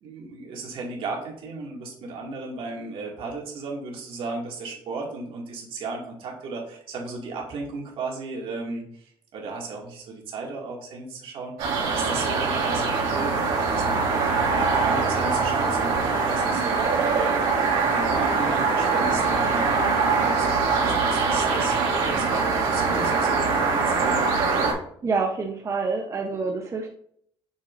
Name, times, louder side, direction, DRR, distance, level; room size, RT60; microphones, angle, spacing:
voice 1, 0.0-8.8 9.3-11.6 11.9-17.3 17.9-24.2, right 3 dB, 70° right, -1 dB, 2.2 m, -35 dB
sound 1, 11.6-24.7, right 4 dB, 85° right, 2.2 m, -23 dB
voice 2, 25.0-27.0, right 4 dB, 30° right, 1 dB, 0.8 m, -27 dB
6.6 x 6.4 x 2.6 m, 0.65 s
cardioid pair, 115°, 10 cm